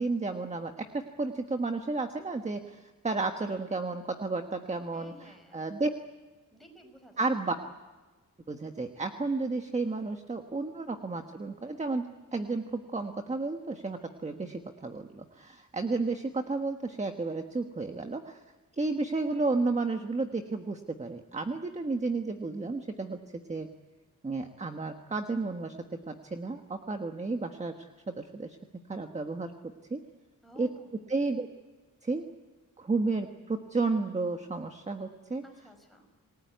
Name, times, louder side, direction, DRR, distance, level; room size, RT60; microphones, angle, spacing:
voice 1, 0.0-5.9 7.2-7.6 8.5-18.4 18.8-23.7 24.2-28.6 28.9-30.0 30.6-30.7 31.1-31.5 32.0-32.3 32.8-35.4, right 3 dB, 20° right, 6 dB, 1.4 m, -32 dB
voice 2, 4.9-5.6 6.5-7.3 30.4-30.9 35.4-36.1, equal, ahead, 3 dB, 5.4 m, -54 dB
27.5 x 19.5 x 9.3 m, 1.3 s
wide cardioid pair, 155°, 32 cm